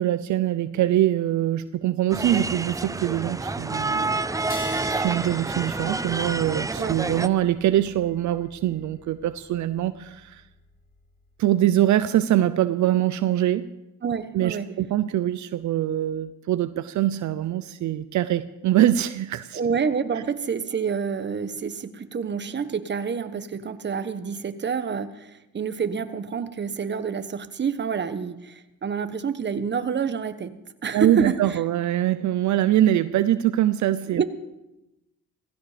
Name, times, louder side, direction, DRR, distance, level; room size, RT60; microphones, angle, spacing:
voice 1, 0.0-4.2 4.9-10.4 11.4-13.7 14.3-19.6 30.9-34.2, right 12 dB, 70° right, 12 dB, 0.7 m, -23 dB
sound 1, 2.1-7.3, right 3 dB, 10° right, 0.5 m, -28 dB
sound 2, 4.5-11.5, left 2 dB, 30° left, 3.9 m, -45 dB
voice 2, 14.0-14.7 19.5-30.5 30.8-31.6 34.1-34.2, right 6 dB, 35° right, 10 dB, 1.2 m, -28 dB
16.5 x 16.0 x 5.1 m, 0.93 s
cardioid pair, 90°, 30 cm